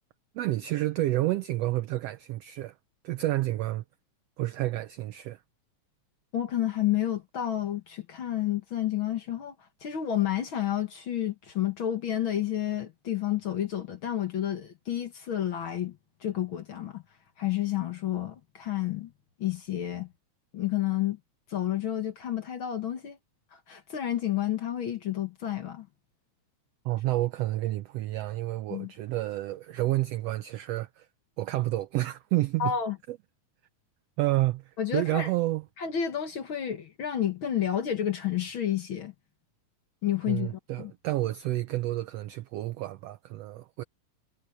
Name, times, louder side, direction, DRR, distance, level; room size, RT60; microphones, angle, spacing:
voice 1, 0.3-2.7 3.0-3.8 4.4-5.4 26.8-31.1 31.4-32.7 33.1-33.2 34.2-35.6 40.3-43.8, right 17 dB, 85° right, 1.4 m, -29 dB
voice 2, 6.3-9.5 9.8-17.0 17.4-19.1 19.4-20.1 20.5-21.2 21.5-23.2 23.5-25.9 28.7-28.9 32.6-33.0 34.8-35.3 35.8-39.1 40.0-40.9, left 11 dB, 50° left, 1.7 m, -30 dB
omnidirectional pair, 3.5 m